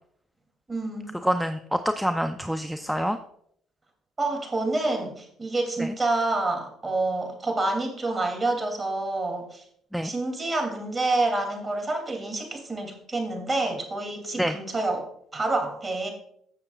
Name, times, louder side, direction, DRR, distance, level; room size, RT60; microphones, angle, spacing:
voice 1, 0.7-1.2 4.2-9.6 10.0-16.1, right 2 dB, 25° right, 3 dB, 2.8 m, -28 dB
voice 2, 1.2-3.2 5.8-5.9 9.9-10.1 14.4-14.6, equal, ahead, 7 dB, 0.5 m, -26 dB
15.0 x 6.7 x 2.4 m, 0.68 s
supercardioid pair, 70°, 0 cm